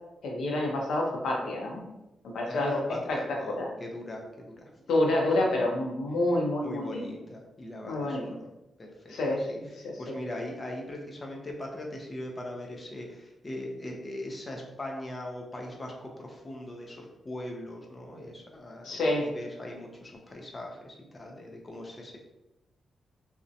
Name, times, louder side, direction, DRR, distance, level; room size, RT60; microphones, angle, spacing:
voice 1, 0.2-1.8 2.2-2.8 3.1-3.2 3.5-3.7 4.9-7.0 7.8-8.3 9.1-10.0 18.8-19.3, left 1 dB, 85° left, -1 dB, 0.5 m, -28 dB
voice 2, 2.5-4.7 6.6-8.4 8.8-22.2, left 1 dB, 25° left, 0 dB, 0.4 m, -40 dB
2.6 x 2.0 x 2.5 m, 0.95 s
cardioid pair, 120°, 0 cm